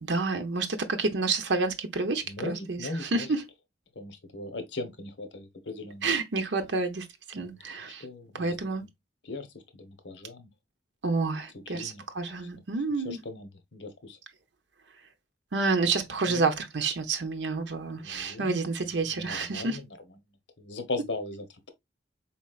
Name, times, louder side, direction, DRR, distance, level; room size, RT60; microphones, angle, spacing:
voice 1, 0.0-3.4 6.0-8.0 8.3-8.9 11.0-13.2 15.5-19.8, right 3 dB, 90° right, 0.8 m, -29 dB
voice 2, 2.2-3.3 3.9-6.1 7.4-7.6 8.0-8.5 9.2-10.5 11.7-12.0 12.4-12.5 13.0-14.2 16.3-16.5 17.9-18.6 19.1-19.9 20.6-21.7, left 2 dB, 90° left, 1.1 m, -38 dB
4.3 x 4.1 x 2.4 m
head